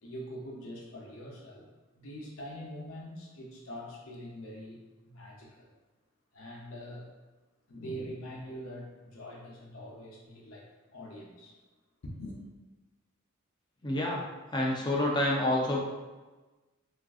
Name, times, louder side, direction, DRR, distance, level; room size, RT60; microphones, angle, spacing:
voice 1, 0.0-1.7 2.0-5.7 6.3-7.1 7.7-11.6 12.0-12.4, equal, 65° left, -2 dB, 0.7 m, -44 dB
voice 2, 13.8-14.2 14.5-15.8, left 1 dB, 20° left, -1 dB, 0.4 m, -28 dB
3.5 x 2.5 x 2.4 m, 1.2 s
head